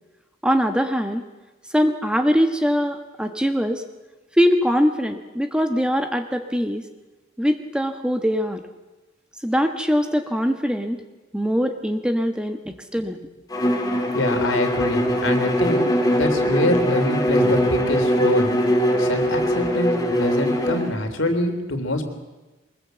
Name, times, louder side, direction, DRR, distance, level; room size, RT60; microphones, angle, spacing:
voice 1, 0.4-1.2 1.7-3.8 4.3-6.8 7.4-8.6 9.4-11.0 11.3-13.3, equal, 5° right, 6 dB, 1.2 m, -22 dB
Bowed string instrument, 13.5-20.9, equal, 20° left, 2.3 m, -21 dB
voice 2, 14.1-15.8 16.1-18.5 19.0-22.0, left 1 dB, 85° left, 6 dB, 3.2 m, -25 dB
23.5 x 20.5 x 8.0 m, 1.1 s
head